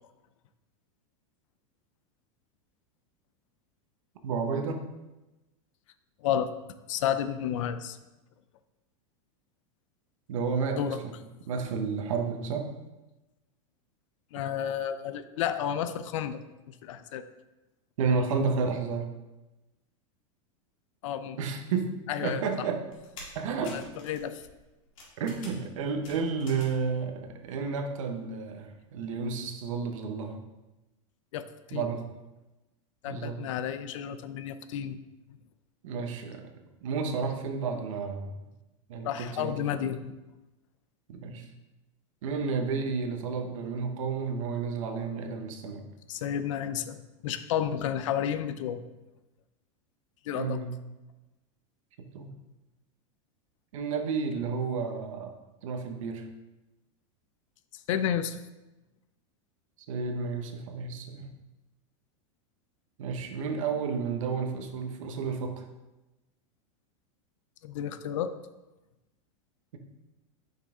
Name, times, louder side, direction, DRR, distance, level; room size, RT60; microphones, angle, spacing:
voice 1, 4.2-4.8 10.3-11.1 11.5-12.7 18.0-19.1 21.4-21.9 22.2-22.8 23.3-23.8 25.2-30.4 31.7-32.0 33.0-33.4 35.8-36.5 36.8-38.3 38.9-39.6 39.8-40.0 41.1-41.5 42.2-45.8 50.3-50.7 52.1-52.3 53.7-55.4 55.6-56.3 59.9-61.3 63.0-65.6, right 5 dB, 75° right, 5 dB, 1.0 m, -31 dB
voice 2, 6.9-8.0 10.8-11.0 14.3-17.2 21.0-21.4 22.1-22.7 23.7-24.4 31.3-31.9 33.0-35.0 39.0-40.1 46.1-48.8 50.3-50.6 57.9-58.4 67.6-68.3, left 9 dB, 70° left, 12 dB, 0.5 m, -31 dB
sound 1, 22.9-26.9 27.2-27.9 28.3-28.4, left 2 dB, 90° left, 2.2 m, -49 dB
5.7 x 5.5 x 3.6 m, 1.0 s
supercardioid pair, 145°, 17 cm